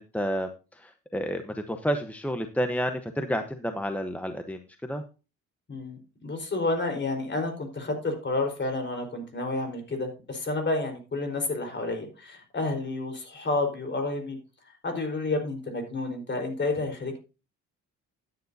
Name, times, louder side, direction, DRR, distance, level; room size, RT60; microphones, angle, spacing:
voice 1, 0.0-5.0, equal, 5° left, 6 dB, 1.0 m, -30 dB
voice 2, 5.7-14.4 14.8-17.2, left 2 dB, 35° left, 4 dB, 4.3 m, -30 dB
13.5 x 9.7 x 2.7 m, 0.32 s
cardioid pair, 90°, 30 cm